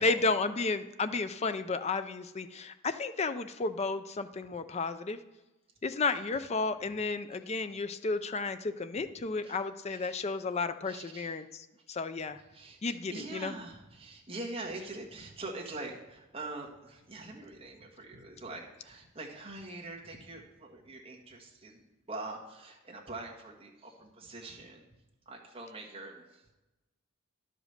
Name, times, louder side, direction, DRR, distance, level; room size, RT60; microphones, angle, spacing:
voice 1, 0.0-5.2 5.8-12.4 12.8-13.5, left 3 dB, 30° left, 11 dB, 0.4 m, -32 dB
voice 2, 6.1-6.4 6.8-7.0 7.7-7.8 9.4-9.6 9.9-10.4 10.8-11.4 12.5-21.8 22.1-24.8 25.3-26.2, right 2 dB, 30° right, -2 dB, 1.5 m, -44 dB
11.0 x 5.1 x 6.5 m, 1.1 s
head